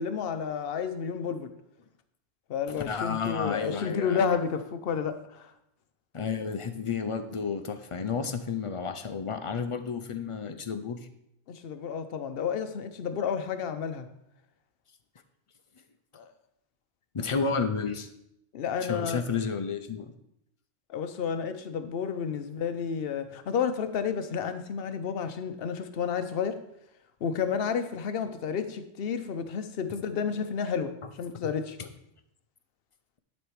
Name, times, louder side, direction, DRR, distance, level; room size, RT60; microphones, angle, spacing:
voice 1, 0.0-1.5 2.5-5.5 11.5-14.1 16.1-16.3 17.3-17.4 18.5-19.2 20.9-26.6 27.2-31.8, left 6 dB, 60° left, 0.9 m, -31 dB
voice 2, 2.9-4.4 6.1-11.0 17.1-18.1 18.8-20.1 31.4-31.5 31.8-31.9, left 5 dB, 40° left, 0.5 m, -31 dB
11.0 x 4.3 x 4.8 m
omnidirectional pair, 1.2 m